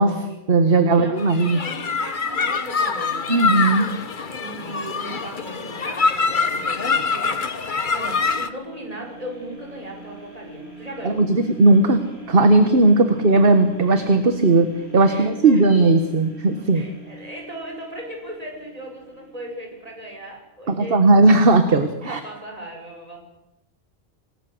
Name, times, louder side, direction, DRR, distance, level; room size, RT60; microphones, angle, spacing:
voice 1, 0.0-1.6 3.3-3.9 11.2-12.0 12.3-14.7 14.9-16.8 20.7-22.2, right 2 dB, 60° right, 8 dB, 1.7 m, -17 dB
voice 2, 0.7-3.2 4.3-11.3 13.1-13.2 15.0-15.7 16.7-21.0 22.1-23.2, right 1 dB, 35° right, 1 dB, 6.2 m, -37 dB
sound 1, 1.2-8.5, left 4 dB, 50° left, 1.3 m, -24 dB
sound 2, 8.1-20.2 20.7-20.8, right 2 dB, 75° right, 6.9 m, -43 dB
26.0 x 19.0 x 7.8 m, 0.91 s
omnidirectional pair, 1.1 m